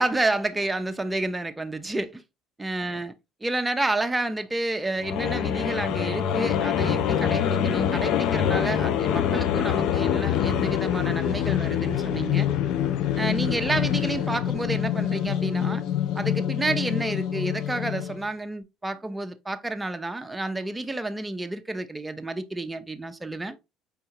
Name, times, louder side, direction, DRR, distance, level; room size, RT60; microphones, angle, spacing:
voice 1, 0.0-2.2 2.6-3.1 3.4-12.5 13.2-15.8 16.1-23.6, right 2 dB, 15° right, 0.6 m, -30 dB
sound 1, 5.0-18.3, left 9 dB, 70° left, 0.4 m, -25 dB
4.7 x 3.6 x 2.9 m
supercardioid pair, 85°, 0 cm